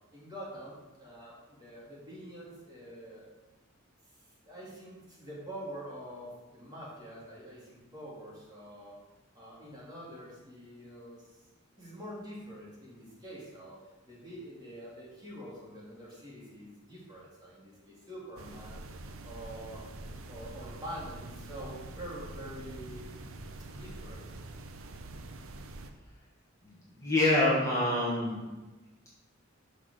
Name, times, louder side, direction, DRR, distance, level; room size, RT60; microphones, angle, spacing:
voice 1, 0.1-3.3 4.4-9.0 9.3-11.4 11.8-13.8 14.0-18.8 19.2-19.8 20.3-23.1 23.7-24.3, equal, 20° right, -7 dB, 3.0 m, -45 dB
sound 1, 18.4-25.9, right 2 dB, 80° right, 0.7 m, -45 dB
voice 2, 26.6-28.4, left 1 dB, 15° left, -7 dB, 2.0 m, -27 dB
6.3 x 5.9 x 6.5 m, 1.1 s
head